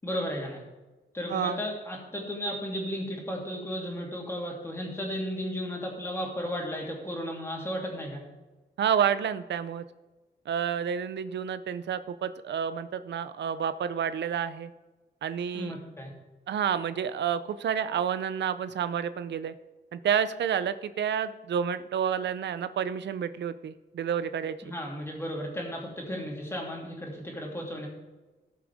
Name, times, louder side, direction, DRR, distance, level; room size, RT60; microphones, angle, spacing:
voice 1, 0.0-0.6 1.1-8.2 15.5-16.1 24.6-27.9, equal, 15° left, -1 dB, 3.0 m, -34 dB
voice 2, 8.8-9.8 10.5-14.7 15.2-15.7 16.5-19.5 19.9-24.6, right 8 dB, 85° right, 13 dB, 0.6 m, -29 dB
18.5 x 7.4 x 3.6 m, 1.2 s
wide cardioid pair, 150°, 18 cm